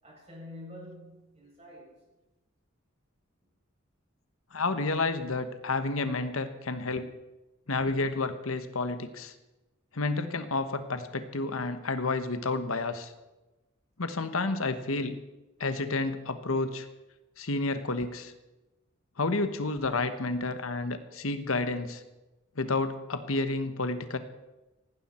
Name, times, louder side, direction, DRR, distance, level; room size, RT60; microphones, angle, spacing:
voice 1, 0.0-2.0, left 1 dB, 30° right, -3 dB, 7.6 m, -47 dB
voice 2, 4.5-7.1 7.7-9.3 9.9-13.1 14.0-15.2 15.6-16.8 17.4-18.3 19.2-22.0 22.6-24.2, left 3 dB, 80° left, 10 dB, 1.2 m, -30 dB
18.0 x 15.5 x 4.4 m, 1.1 s
head